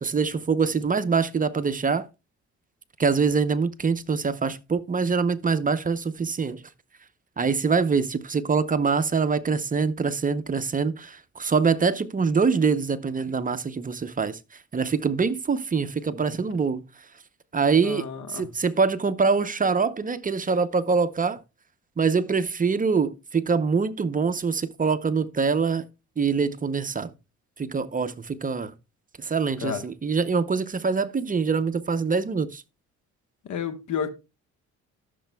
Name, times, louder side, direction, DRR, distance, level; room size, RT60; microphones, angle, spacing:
voice 1, 0.0-2.1 3.0-6.6 7.4-14.4 14.7-16.8 17.5-21.4 22.0-25.8 26.2-27.1 27.6-28.7 29.2-32.6, right 5 dB, 25° right, 0.7 m, -24 dB
voice 2, 17.8-18.5 29.6-29.9 33.4-34.1, left 7 dB, 75° left, 1.3 m, -31 dB
14.5 x 6.8 x 2.2 m
cardioid pair, 90°, 30 cm